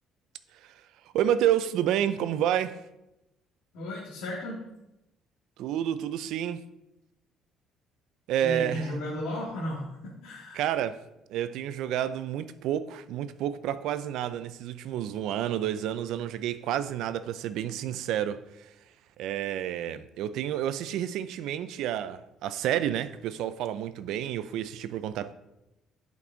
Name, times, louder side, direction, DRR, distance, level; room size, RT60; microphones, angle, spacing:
voice 1, 1.1-2.8 5.6-6.6 8.3-9.0 10.5-11.0 11.3-18.7 19.2-25.3, right 10 dB, 65° right, 0.5 m, -30 dB
voice 2, 3.7-4.6 8.4-10.6, left 1 dB, 75° left, 2.0 m, -34 dB
11.0 x 5.2 x 3.9 m
cardioid pair, 175°, 0 cm